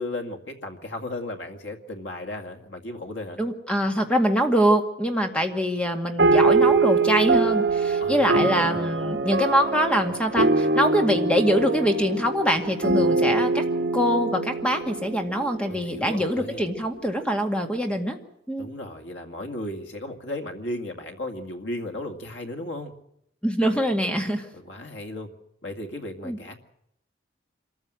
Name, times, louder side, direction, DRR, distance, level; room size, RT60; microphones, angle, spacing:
voice 1, 0.0-3.4 8.0-8.8 15.7-16.6 18.6-22.9 24.5-25.3 25.6-26.5, left 1 dB, 90° left, 5 dB, 2.3 m, -35 dB
voice 2, 3.4-13.6 13.9-18.2 18.5-18.7 23.4-24.5 26.2-26.4, equal, 5° left, 4 dB, 2.1 m, -24 dB
sound 1, 6.2-15.9, right 3 dB, 65° right, 1.4 m, -23 dB
25.5 x 14.5 x 7.7 m, 0.77 s
head